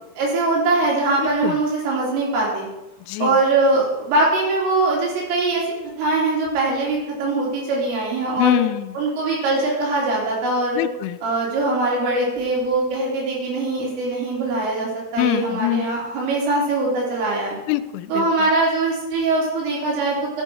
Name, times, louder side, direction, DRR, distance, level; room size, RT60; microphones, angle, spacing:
voice 1, 0.2-2.7 3.2-8.6 8.9-10.8 11.2-17.6 18.1-20.4, right 2 dB, 75° right, -4 dB, 5.7 m, -22 dB
voice 2, 1.2-1.5 3.1-3.4 8.4-8.9 10.8-11.2 15.2-15.9 17.7-18.3, left 17 dB, 85° left, 12 dB, 3.0 m, -23 dB
13.0 x 6.8 x 4.6 m, 0.96 s
omnidirectional pair, 5.8 m